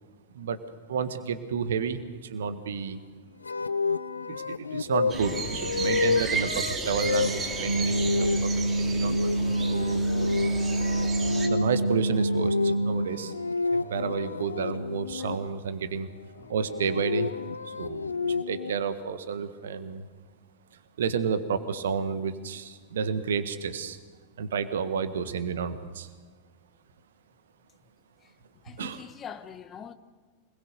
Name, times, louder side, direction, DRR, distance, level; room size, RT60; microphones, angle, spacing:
voice 1, 0.9-3.0 4.3-9.4 9.7-10.0 11.5-13.3 13.7-16.1 16.5-17.3 17.7-20.0 21.0-24.0 24.4-26.1 28.8-29.0, right 6 dB, 65° right, 1.5 m, -31 dB
sound 1, 3.4-15.4 16.5-18.7, left 4 dB, 75° left, 0.6 m, -31 dB
sound 2, 5.1-11.5, right 4 dB, 20° right, 2.8 m, -34 dB
sound 3, 7.7-13.1, right 1 dB, 85° right, 1.4 m, -26 dB
voice 2, 28.6-29.9, left 7 dB, 25° left, 1.2 m, -43 dB
26.0 x 21.0 x 6.8 m
figure-of-eight pair, 90°, 0 cm